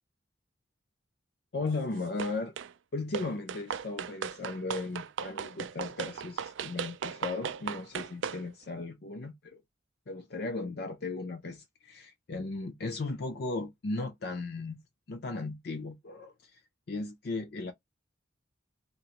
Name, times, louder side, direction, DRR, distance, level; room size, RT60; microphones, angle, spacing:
voice 1, 1.5-2.5 2.9-9.6 10.1-14.8 15.1-16.6 16.9-17.7, left 3 dB, 55° left, 0.5 m, -36 dB
sound 1, 2.2-2.7 3.1-8.4, right 7 dB, 75° right, 0.4 m, -37 dB
2.8 x 2.5 x 2.7 m
head